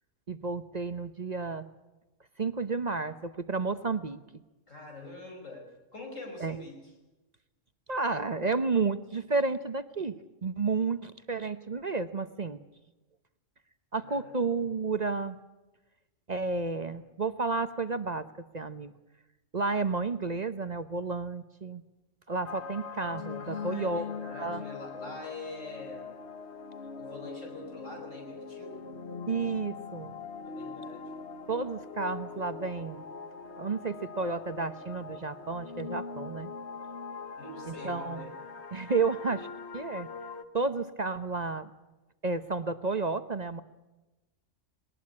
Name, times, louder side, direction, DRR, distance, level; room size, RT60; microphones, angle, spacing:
voice 1, 0.3-1.7 2.4-4.4 6.4-6.6 7.9-12.6 13.9-15.4 16.3-18.3 18.5-18.9 19.5-21.8 22.3-24.1 24.4-24.6 29.3-30.1 31.5-33.0 33.6-36.5 37.7-38.3 38.7-39.5 39.7-40.1 40.5-41.7 42.2-43.6, right 4 dB, 40° right, 11 dB, 0.9 m, -31 dB
voice 2, 4.7-5.7 5.9-6.9 14.0-14.7 23.4-26.2 27.0-28.9 30.4-31.1 37.4-38.3, left 2 dB, 85° left, 1 dB, 5.6 m, -44 dB
sound 1, 22.4-40.4, left 5 dB, 60° left, 1.6 m, -42 dB
20.5 x 19.0 x 9.7 m, 1.1 s
omnidirectional pair, 1.3 m